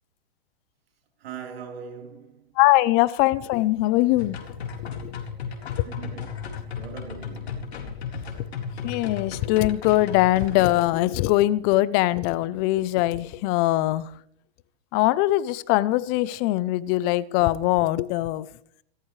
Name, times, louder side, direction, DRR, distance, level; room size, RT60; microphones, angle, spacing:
voice 1, 1.2-2.4 5.8-7.8, right 6 dB, 70° right, 4.1 m, -41 dB
voice 2, 2.6-4.4 4.8-5.2 5.7-5.9 8.8-14.1 14.9-18.5, left 17 dB, 30° left, 0.7 m, -22 dB
sound 1, 4.2-10.7, left 6 dB, 85° left, 4.1 m, -35 dB
26.0 x 14.0 x 3.3 m
hypercardioid pair, 140°, 31 cm